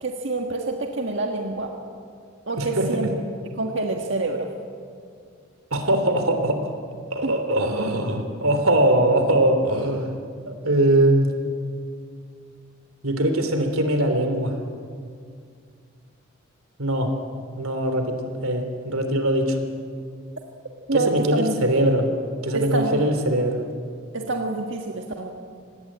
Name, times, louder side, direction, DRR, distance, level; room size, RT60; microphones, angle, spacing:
voice 1, 0.0-1.7 2.5-3.2 3.6-4.5 7.2-7.3 20.9-21.6 22.5-23.1 24.1-25.3, right 2 dB, 60° right, 2 dB, 1.7 m, -26 dB
voice 2, 2.6-2.9 5.7-6.7 7.1-10.1 10.4-11.3 13.0-14.5 16.8-17.1 17.6-19.6 20.9-22.1 22.4-23.6, right 1 dB, 90° right, 6 dB, 3.3 m, -21 dB
25.5 x 19.5 x 8.9 m, 2.2 s
head